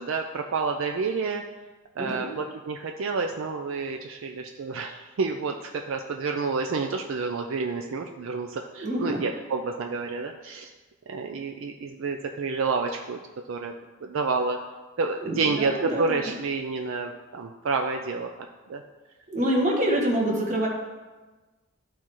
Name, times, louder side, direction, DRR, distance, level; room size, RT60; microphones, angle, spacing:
voice 1, 0.0-1.4 2.0-10.7 11.1-13.2 13.5-13.7 14.0-14.6 15.0-18.3 18.7-18.8, right 4 dB, 70° right, 4 dB, 0.4 m, -29 dB
voice 2, 2.0-2.4 8.8-9.2 15.2-16.3 19.3-20.7, right 1 dB, 35° right, -1 dB, 1.4 m, -26 dB
13.0 x 4.3 x 3.1 m, 1.2 s
head